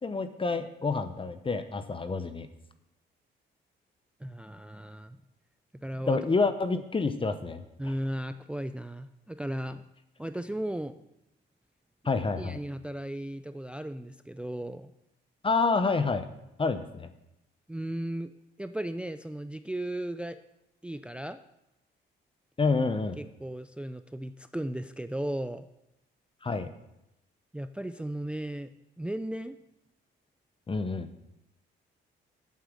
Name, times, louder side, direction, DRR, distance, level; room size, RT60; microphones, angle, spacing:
voice 1, 0.0-2.5 6.1-7.6 12.0-12.6 15.4-16.3 16.6-17.1 22.6-23.2 26.4-26.7 30.7-31.1, left 4 dB, 25° left, 10 dB, 0.9 m, -28 dB
voice 2, 4.2-5.2 5.8-6.2 6.7-6.8 7.8-9.8 10.2-11.0 12.4-14.9 17.7-18.3 18.6-20.4 20.8-21.4 23.2-25.7 27.5-28.7 29.0-29.6, right 1 dB, 5° right, 10 dB, 0.4 m, -36 dB
8.3 x 8.0 x 6.2 m, 0.88 s
cardioid pair, 90°, 20 cm